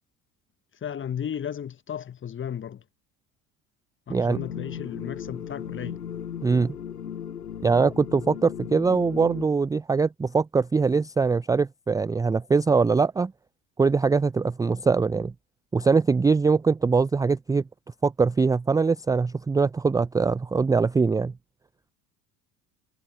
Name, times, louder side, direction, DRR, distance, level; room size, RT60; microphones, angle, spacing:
voice 1, 0.8-2.8 4.1-6.0, left 9 dB, 25° left, 1.2 m, -34 dB
sound 1, 4.4-9.5, left 9 dB, 80° left, 5.8 m, -36 dB
voice 2, 6.4-6.8 7.6-13.3 13.8-15.3 15.7-17.6 18.0-21.3, right 4 dB, 10° right, 0.5 m, -22 dB
figure-of-eight pair, 65°, 47 cm